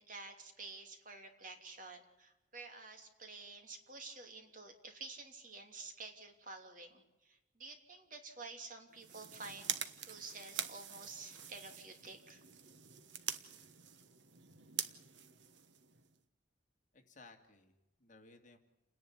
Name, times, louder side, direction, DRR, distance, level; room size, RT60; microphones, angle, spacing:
voice 1, 0.0-12.4, right 3 dB, 45° right, 5 dB, 3.0 m, -51 dB
sound 1, 8.9-16.2, right 9 dB, 70° right, 1.3 m, -45 dB
voice 2, 16.9-18.6, left 3 dB, 40° left, 4 dB, 2.5 m, -60 dB
29.5 x 10.5 x 10.0 m, 0.99 s
head